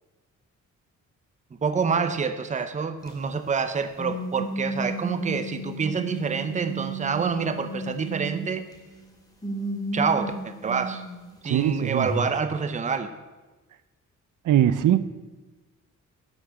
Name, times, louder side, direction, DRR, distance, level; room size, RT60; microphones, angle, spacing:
voice 1, 1.6-8.6 9.9-11.0 11.4-13.1, right 5 dB, 25° right, 10 dB, 0.6 m, -27 dB
sound 1, 3.0-3.3 4.0-9.1 9.4-11.8 12.0-12.2, right 2 dB, 10° left, 1.7 m, -33 dB
voice 2, 11.4-12.1 14.4-15.2, right 11 dB, 80° right, 14 dB, 0.6 m, -21 dB
11.0 x 6.4 x 7.6 m, 1.2 s
wide cardioid pair, 175°, 31 cm